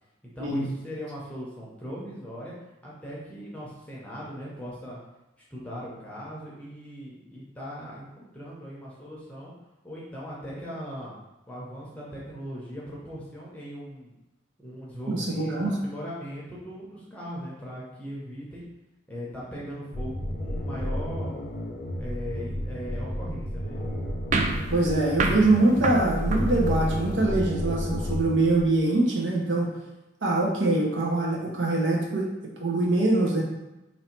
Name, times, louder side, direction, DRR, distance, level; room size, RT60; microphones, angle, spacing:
voice 1, 0.2-2.5 2.8-5.0 5.5-9.5 9.8-11.1 11.5-14.1 14.6-18.6 19.1-21.4 22.0-23.8, equal, 5° left, -6 dB, 0.7 m, -39 dB
voice 2, 15.1-15.8 24.7-29.7 30.2-32.3 32.6-33.4, right 2 dB, 70° right, -2 dB, 0.8 m, -23 dB
sound 1, 19.9-28.8, equal, 45° left, 0.6 m, -31 dB
sound 2, 24.3-27.2, right 4 dB, 40° right, 0.3 m, -30 dB
3.1 x 2.7 x 4.5 m, 0.99 s
head